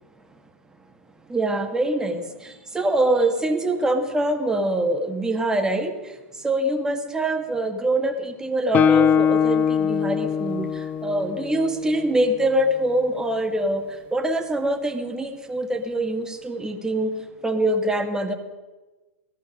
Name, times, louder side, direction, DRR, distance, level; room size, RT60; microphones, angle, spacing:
voice 1, 1.3-18.3, right 1 dB, 10° right, 5 dB, 1.7 m, -24 dB
Guitar, 8.7-12.4, left 7 dB, 20° left, 0.4 m, -22 dB
17.5 x 14.0 x 5.3 m, 1.2 s
figure-of-eight pair, 100°, 7 cm